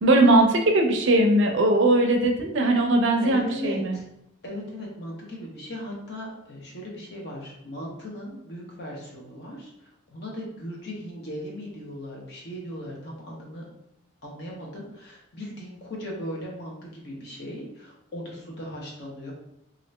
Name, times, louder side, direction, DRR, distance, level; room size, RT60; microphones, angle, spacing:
voice 1, 0.0-3.9, right 2 dB, 60° right, 3 dB, 0.5 m, -20 dB
voice 2, 3.2-4.1 4.4-13.7 14.2-19.3, equal, 50° left, -3 dB, 0.9 m, -37 dB
2.9 x 2.5 x 3.1 m, 0.82 s
head